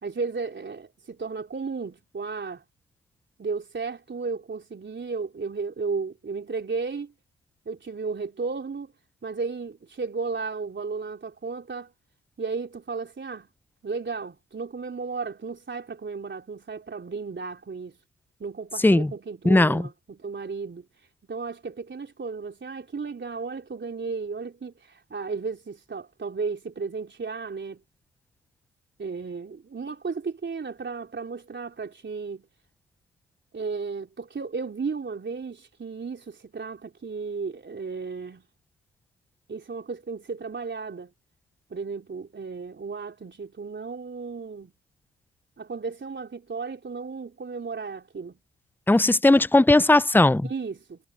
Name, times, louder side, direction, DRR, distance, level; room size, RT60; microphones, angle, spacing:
voice 1, 0.0-2.6 3.4-7.1 7.7-8.9 9.2-11.9 12.4-13.5 13.8-18.0 18.4-20.9 21.3-27.8 29.0-32.4 33.5-38.5 39.5-41.1 41.7-44.7 45.6-48.4 50.4-51.0, right 4 dB, 40° right, 4.0 m, -34 dB
voice 2, 19.4-19.8 48.9-50.5, left 2 dB, 5° left, 0.8 m, -18 dB
hypercardioid pair, 40°, 29 cm